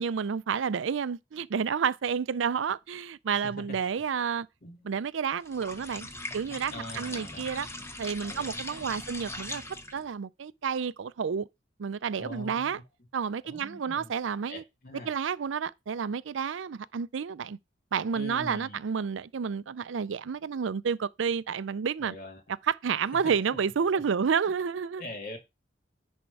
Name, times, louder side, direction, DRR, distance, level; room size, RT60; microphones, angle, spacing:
voice 1, 0.0-4.5 4.8-6.1 6.3-7.7 8.0-9.6 9.9-11.5 11.8-12.8 13.1-14.6 15.1-17.6 17.9-22.1 22.7-25.0, right 6 dB, 75° right, 0.4 m, -30 dB
voice 2, 3.3-3.8 4.6-4.9 6.7-7.9 8.3-9.2 12.2-12.8 13.4-14.1 14.5-15.1 18.1-18.8 22.0-22.5 23.9-24.0 25.0-25.4, left 1 dB, 50° left, 2.4 m, -43 dB
sound 1, 5.4-10.1, left 1 dB, 15° left, 0.9 m, -40 dB
10.5 x 3.6 x 4.7 m
head